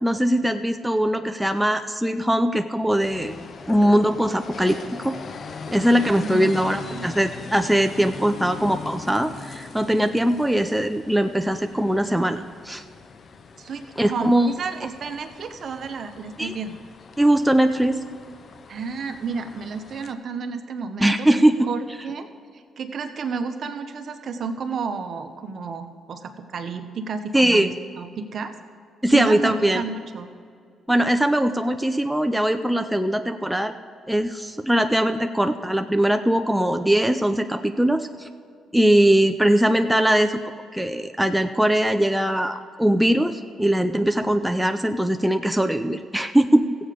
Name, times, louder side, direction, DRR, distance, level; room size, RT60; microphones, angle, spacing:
voice 1, 0.0-3.3 3.7-5.2 5.7-12.8 14.0-14.5 16.4-16.5 17.2-18.0 21.0-21.7 27.3-27.7 29.0-29.8 30.9-33.7 34.1-38.3 38.7-40.4 40.7-46.8, right 1 dB, 5° right, 6 dB, 0.5 m, -21 dB
sound 1, 3.0-20.1, left 5 dB, 50° left, 0.7 m, -40 dB
voice 2, 6.0-7.1 13.6-16.8 18.7-21.3 21.7-28.5 29.1-30.3, right 5 dB, 55° right, 7 dB, 0.9 m, -32 dB
15.0 x 7.9 x 5.0 m, 2.2 s
cardioid pair, 90°, 0 cm